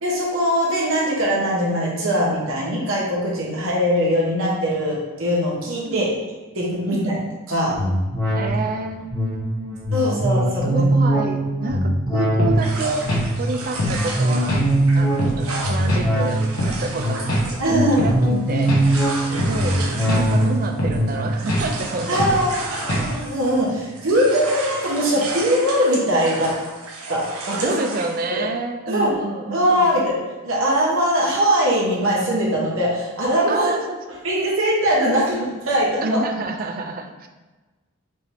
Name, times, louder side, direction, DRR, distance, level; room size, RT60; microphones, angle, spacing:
voice 1, 0.0-6.1 6.5-7.1 7.5-7.8 9.9-10.9 17.6-18.0 22.1-26.5 27.1-27.8 28.3-28.4 28.9-29.1 29.5-30.2 30.4-33.8 34.2-36.2, equal, 65° right, -4 dB, 1.1 m, -21 dB
voice 2, 6.8-7.2 8.3-9.8 10.1-13.1 13.4-14.6 14.9-18.9 19.2-22.5 23.0-23.1 27.6-30.1 33.5-34.0 36.0-37.3, right 3 dB, 40° right, 5 dB, 0.4 m, -29 dB
sound 1, 7.7-23.5 23.9-24.0, right 1 dB, 15° left, 1.3 m, -22 dB
sound 2, 12.4-12.6 13.1-13.3 13.8-14.0 14.5-14.7 15.2-15.4 15.9-16.1 16.6-16.8 17.3-17.5 18.0-18.2 18.7-18.9 19.4-19.6 20.1-20.3 20.8-21.0 21.5-21.7 22.2-22.4 22.9-23.1, equal, 80° left, 1.3 m, -23 dB
sound 3, 12.6-23.7 23.9-28.3, right 3 dB, 85° right, 0.8 m, -33 dB
5.2 x 2.8 x 3.4 m, 1.2 s
head